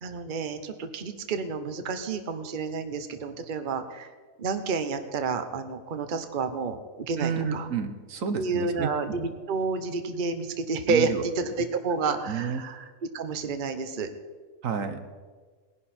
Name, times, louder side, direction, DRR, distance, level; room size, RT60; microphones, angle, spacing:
voice 1, 0.0-4.1 4.4-7.7 8.4-12.8 13.1-14.1, right 4 dB, 40° right, 8 dB, 1.0 m, -30 dB
voice 2, 7.2-9.1 10.9-11.2 12.3-12.7 14.6-15.0, right 6 dB, 70° right, 8 dB, 1.4 m, -30 dB
19.5 x 11.0 x 4.3 m, 1.4 s
omnidirectional pair, 1.4 m